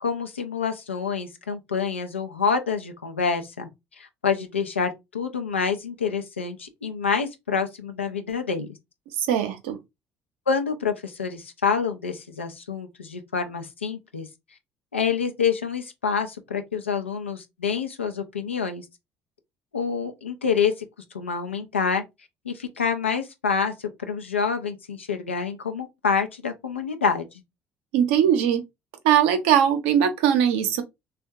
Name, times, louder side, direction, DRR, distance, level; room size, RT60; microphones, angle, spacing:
voice 1, 0.0-3.7 4.0-8.7 10.5-14.3 14.9-18.8 19.7-20.7 21.1-22.0 22.4-27.3, left 6 dB, 90° left, 0.4 m, -27 dB
voice 2, 9.2-9.8 27.9-28.6 29.0-30.8, right 9 dB, 70° right, 0.6 m, -20 dB
3.5 x 2.2 x 2.6 m
figure-of-eight pair, 55°, 6 cm